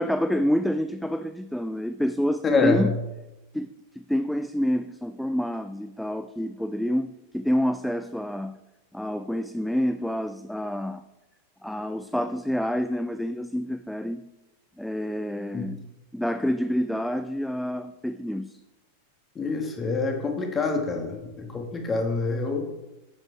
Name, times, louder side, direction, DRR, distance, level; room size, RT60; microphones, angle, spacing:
voice 1, 0.0-3.0 3.5-3.7 4.0-8.6 8.9-11.0 11.6-14.3 14.8-15.8 16.1-18.6, equal, ahead, 10 dB, 0.4 m, -28 dB
voice 2, 2.4-2.9 15.5-15.7 19.4-22.7, left 4 dB, 20° left, 3 dB, 2.0 m, -26 dB
10.5 x 8.0 x 4.6 m, 0.99 s
figure-of-eight pair, 90°, 0 cm